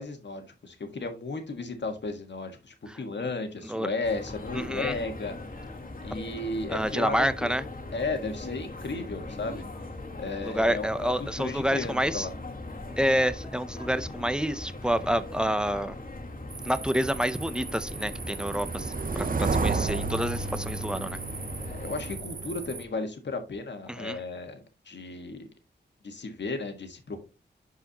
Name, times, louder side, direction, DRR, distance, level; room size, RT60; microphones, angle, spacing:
voice 1, 0.0-5.3 6.0-7.5 7.9-9.6 10.2-12.3 21.6-25.4 26.0-27.2, left 3 dB, 70° left, 1.7 m, -34 dB
sound 1, 4.0-22.2, left 2 dB, 50° left, 1.8 m, -40 dB
voice 2, 4.5-5.0 6.7-7.6 10.4-12.3 13.0-16.0 16.6-21.2 23.9-24.2, equal, 5° right, 0.6 m, -28 dB
sound 2, 16.5-22.8, right 4 dB, 45° right, 0.7 m, -32 dB
11.5 x 4.7 x 2.9 m
wide cardioid pair, 110°, 19 cm